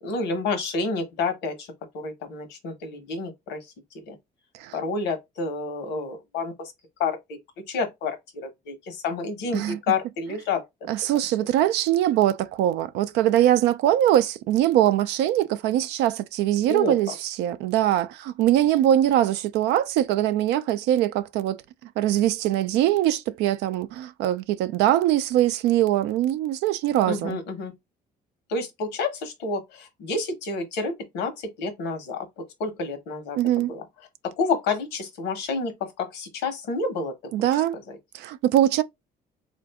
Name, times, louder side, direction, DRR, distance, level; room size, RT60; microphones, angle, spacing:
voice 1, 0.0-1.7 1.9-3.7 4.1-4.2 4.7-6.7 7.0-7.4 7.7-8.2 8.4-10.6 16.7-16.9 27.1-27.7 28.5-32.3 32.6-33.8 34.4-37.1 37.9-38.0, left 4 dB, 90° left, 1.1 m, -29 dB
voice 2, 10.9-21.6 22.0-27.4 33.4-33.7 37.3-37.8 38.1-38.8, right 12 dB, 90° right, 0.4 m, -22 dB
3.7 x 2.5 x 3.4 m
cardioid pair, 110°, 17 cm